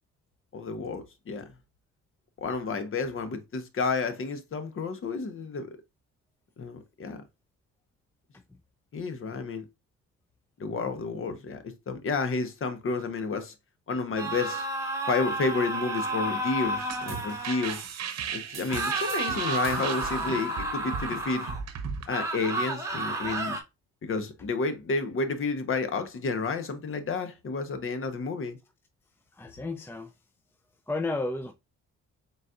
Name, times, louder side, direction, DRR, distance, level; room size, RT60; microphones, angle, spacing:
voice 1, 0.5-1.5 2.4-5.8 6.6-7.2 8.9-9.6 10.6-13.5 13.9-14.7 15.1-17.8 18.3-21.5 22.1-23.6 24.0-28.6, left 4 dB, 45° left, 1.0 m, -31 dB
sound 1, 14.2-17.8 18.7-21.6 22.1-23.6, right 2 dB, 10° right, 1.3 m, -31 dB
sound 2, 16.6-22.1, right 7 dB, 60° right, 0.9 m, -36 dB
voice 2, 29.4-30.1 30.9-31.5, left 2 dB, 10° left, 0.5 m, -32 dB
4.0 x 4.0 x 2.4 m
cardioid pair, 90°, 30 cm